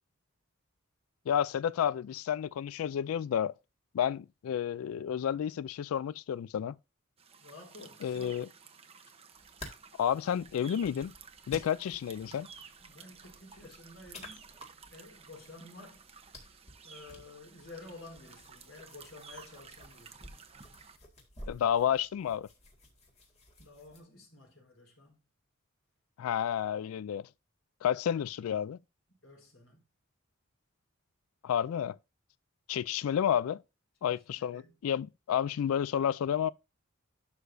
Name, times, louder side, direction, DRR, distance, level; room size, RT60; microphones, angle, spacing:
voice 1, 1.3-3.5 3.9-6.8 8.0-8.5 10.0-11.1 11.5-12.5 21.5-22.5 26.2-27.3 27.8-28.8 31.4-32.0 32.7-33.6 34.0-36.5, left 9 dB, 85° left, 0.3 m, -31 dB
sound 1, 7.2-21.0, right 6 dB, 30° right, 0.9 m, -54 dB
voice 2, 7.4-8.4 12.8-14.5 14.9-16.5 16.8-20.4 23.6-25.2 29.2-29.8 34.1-34.8, left 2 dB, 65° left, 4.0 m, -52 dB
sound 2, 9.3-24.0, left 1 dB, 30° left, 2.0 m, -53 dB
11.5 x 6.6 x 2.6 m
head